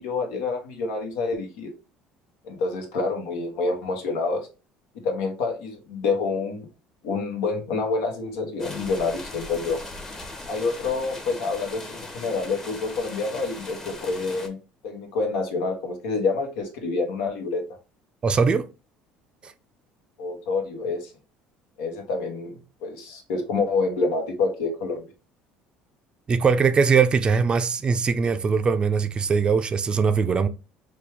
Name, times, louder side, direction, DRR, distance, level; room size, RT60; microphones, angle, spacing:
voice 1, 0.0-1.7 2.4-4.5 5.0-6.7 7.0-9.8 10.5-14.6 14.8-17.8 20.2-21.1 21.8-25.1, left 3 dB, 85° left, 1.1 m, -27 dB
sound 1, 8.6-14.5, left 2 dB, 20° left, 0.9 m, -39 dB
voice 2, 18.2-18.7 19.4-19.5 26.3-30.5, right 5 dB, 30° right, 0.4 m, -21 dB
4.2 x 2.3 x 3.4 m
supercardioid pair, 100°, 3 cm